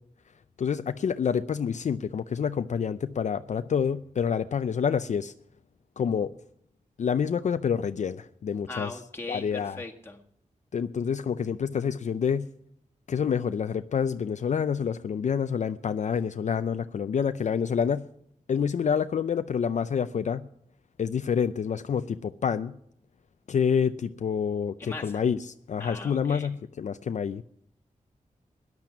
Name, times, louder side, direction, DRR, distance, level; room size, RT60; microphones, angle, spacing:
voice 1, 0.6-5.3 6.0-6.3 7.0-9.0 9.3-9.8 10.7-12.5 13.1-18.0 18.5-20.4 21.0-22.7 23.5-27.4, left 7 dB, 60° left, 11 dB, 0.4 m, -27 dB
voice 2, 8.7-10.2 24.8-25.2 25.8-26.5, left 2 dB, 15° left, 1 dB, 1.9 m, -39 dB
13.5 x 10.5 x 6.0 m, 0.70 s
wide cardioid pair, 100°, 14 cm